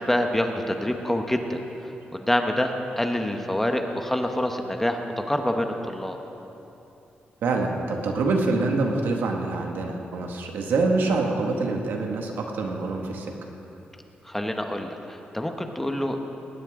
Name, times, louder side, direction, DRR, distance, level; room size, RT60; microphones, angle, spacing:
voice 1, 0.0-1.6 2.1-6.2 14.2-16.2, left 1 dB, 5° left, 4 dB, 1.1 m, -26 dB
voice 2, 7.4-13.3, right 3 dB, 90° right, 1 dB, 1.9 m, -25 dB
20.5 x 18.0 x 3.8 m, 3.0 s
wide cardioid pair, 125°, 3 cm